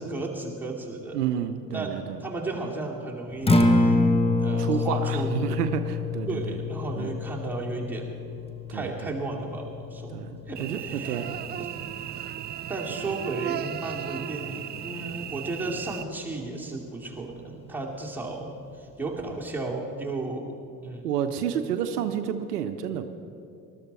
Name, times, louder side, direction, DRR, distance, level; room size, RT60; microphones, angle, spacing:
voice 1, 0.0-1.3 1.7-4.0 4.4-5.3 6.3-8.2 8.7-11.2 11.6-11.7 12.7-20.6 20.8-21.1, right 2 dB, 5° right, -3 dB, 2.8 m, -34 dB
voice 2, 1.1-2.2 4.6-6.6 7.0-7.1 8.7-9.2 10.1-10.3 10.6-11.4 21.0-23.1, right 9 dB, 80° right, 9 dB, 0.7 m, -30 dB
Acoustic guitar, 3.3-11.5, left 2 dB, 10° left, 1.2 m, -27 dB
Cricket / Buzz, 10.6-16.0, right 11 dB, 25° right, 0.3 m, -35 dB
20.0 x 13.0 x 4.3 m, 2.7 s
figure-of-eight pair, 55°, 47 cm